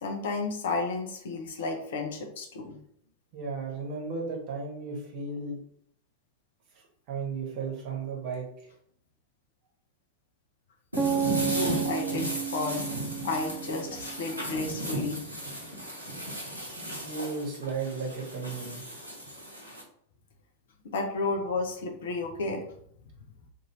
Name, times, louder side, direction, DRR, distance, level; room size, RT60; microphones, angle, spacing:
voice 1, 0.0-2.8 11.4-12.8 13.2-15.2 20.8-22.6, left 3 dB, 60° left, 3 dB, 0.6 m, -32 dB
voice 2, 3.3-5.6 6.7-8.7 17.0-18.9, right 4 dB, 45° right, -1 dB, 1.1 m, -35 dB
sound 1, 10.9-19.8, equal, 85° right, 0.7 m, -36 dB
sound 2, 11.0-14.9, right 7 dB, 15° right, 0.5 m, -32 dB
2.6 x 2.6 x 3.0 m, 0.67 s
figure-of-eight pair, 90°, 0 cm